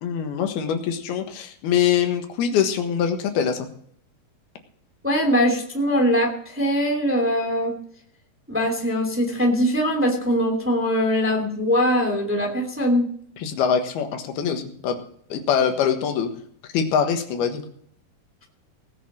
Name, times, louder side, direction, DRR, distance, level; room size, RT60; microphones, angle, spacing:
voice 1, 0.0-3.7 13.4-15.0 15.3-16.3 16.7-17.6, left 7 dB, 90° left, 6 dB, 3.5 m, -23 dB
voice 2, 5.0-7.7 8.5-13.1, equal, 5° right, 2 dB, 2.1 m, -22 dB
18.5 x 6.5 x 7.4 m, 0.62 s
omnidirectional pair, 4.3 m